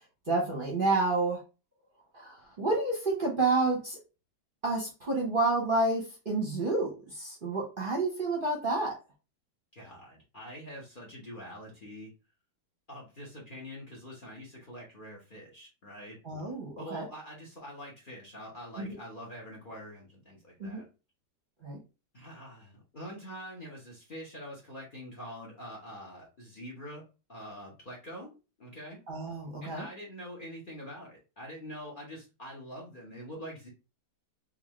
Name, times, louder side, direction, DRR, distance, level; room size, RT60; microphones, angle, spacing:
voice 1, 0.3-1.4 2.1-4.0 4.6-8.9 16.2-17.0 18.8-19.0 20.6-20.8 21.6-21.8 29.1-29.8, right 2 dB, 35° right, -2 dB, 0.9 m, -29 dB
voice 2, 9.7-12.1 12.9-16.2 16.8-20.8 22.1-28.3 28.6-29.0 29.6-33.7, equal, 35° left, -2 dB, 1.0 m, -45 dB
3.8 x 2.6 x 3.1 m, 0.30 s
omnidirectional pair, 1.9 m